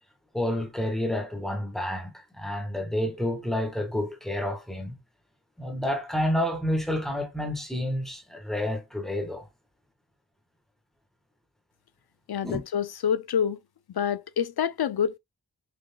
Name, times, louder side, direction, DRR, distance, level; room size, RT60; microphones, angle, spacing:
voice 1, 0.3-5.0 5.6-9.4 12.4-12.6, left 1 dB, ahead, 1.8 m, -29 dB
voice 2, 12.3-13.6 14.0-15.2, left 8 dB, 70° left, 0.5 m, -27 dB
5.9 x 2.9 x 2.2 m
wide cardioid pair, 40°, 38 cm